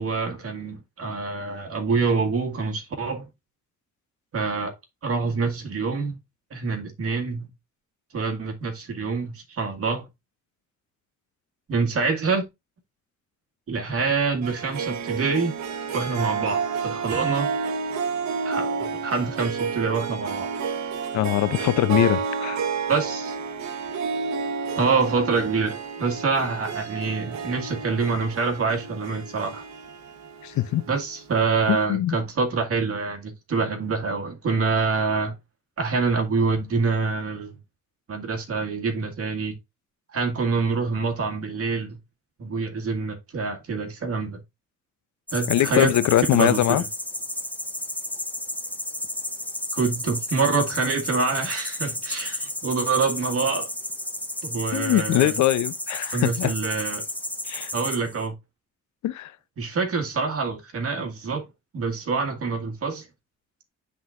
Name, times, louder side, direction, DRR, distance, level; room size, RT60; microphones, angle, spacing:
voice 1, 0.0-3.3 4.3-4.7 5.0-6.2 6.5-7.5 8.1-10.1 11.7-12.4 13.7-15.6 15.9-17.5 18.4-20.5 22.9-23.4 24.8-29.7 30.9-35.4 35.8-37.5 38.1-39.6 40.1-42.0 42.4-44.4 45.3-45.9 46.3-46.8 49.7-53.7 54.4-55.3 56.1-57.0 57.7-58.3 59.6-61.5 61.7-63.1, right 4 dB, 50° right, 1.9 m, -26 dB
Harp, 14.4-31.2, right 5 dB, 65° right, 1.1 m, -30 dB
voice 2, 21.1-22.6 30.4-30.8 31.7-32.2 45.5-46.8 54.7-56.5 57.4-57.7 59.0-59.4, left 14 dB, 70° left, 0.6 m, -22 dB
sound 1, 45.3-58.3, left 1 dB, 5° left, 1.1 m, -32 dB
11.5 x 3.9 x 2.5 m
cardioid pair, 90°, 30 cm